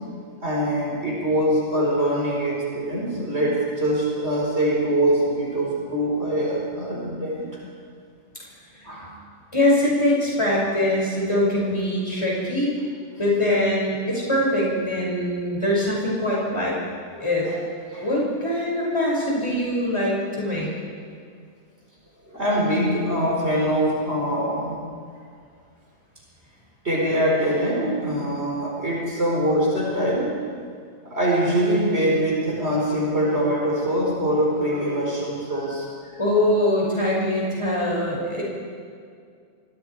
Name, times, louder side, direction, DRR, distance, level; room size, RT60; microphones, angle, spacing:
voice 1, 0.4-7.5 8.8-9.1 17.4-17.6 17.9-18.1 22.3-24.8 26.8-30.4 31.0-36.2, right 1 dB, 60° right, -4 dB, 4.8 m, -23 dB
voice 2, 8.7-9.1 9.5-12.7 13.2-16.7 17.1-17.4 18.0-20.7 36.2-38.4, left 1 dB, 25° left, -4 dB, 6.2 m, -23 dB
27.5 x 22.5 x 4.8 m, 2.2 s
omnidirectional pair, 1.3 m